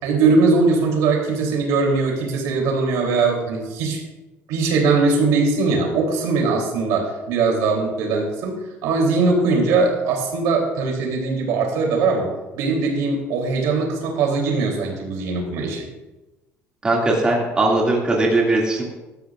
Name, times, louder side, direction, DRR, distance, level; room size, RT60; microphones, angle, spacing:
voice 1, 0.0-4.0 4.5-12.3 12.5-15.8, right 4 dB, 85° right, 0 dB, 3.5 m, -20 dB
voice 2, 16.8-18.8, right 2 dB, 15° right, -3 dB, 2.4 m, -19 dB
17.0 x 13.0 x 2.6 m, 1.1 s
cardioid pair, 150°, 5 cm